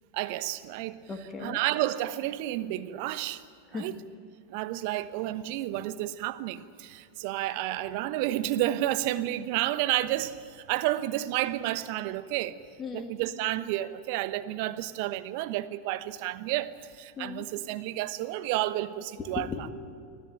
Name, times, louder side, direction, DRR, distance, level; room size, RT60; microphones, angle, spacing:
voice 1, 0.1-1.0 1.4-3.4 3.7-3.9 4.5-12.6 12.9-19.5, right 14 dB, 50° right, 1.0 m, -31 dB
voice 2, 1.1-1.6 3.7-4.0 12.8-13.2 17.2-17.4 19.2-19.7, left 5 dB, 25° left, 2.6 m, -36 dB
25.0 x 16.0 x 9.0 m
figure-of-eight pair, 90°, 0 cm